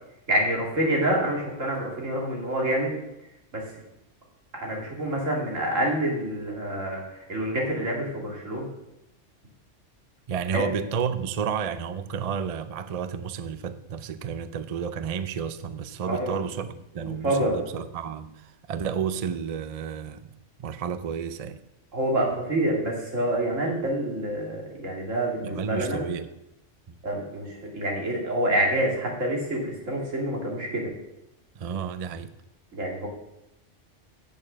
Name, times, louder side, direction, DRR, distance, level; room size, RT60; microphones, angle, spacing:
voice 1, 0.3-2.9 3.5-3.6 4.5-8.7 10.5-10.6 16.1-16.4 17.0-17.6 21.9-26.1 27.0-30.9 32.7-33.1, right 1 dB, 90° right, -1 dB, 2.8 m, -27 dB
voice 2, 10.3-20.2 20.6-21.6 25.4-26.3 26.9-27.0 31.6-32.3, right 7 dB, 45° right, 12 dB, 0.5 m, -31 dB
8.8 x 7.0 x 6.1 m, 0.87 s
omnidirectional pair, 1.3 m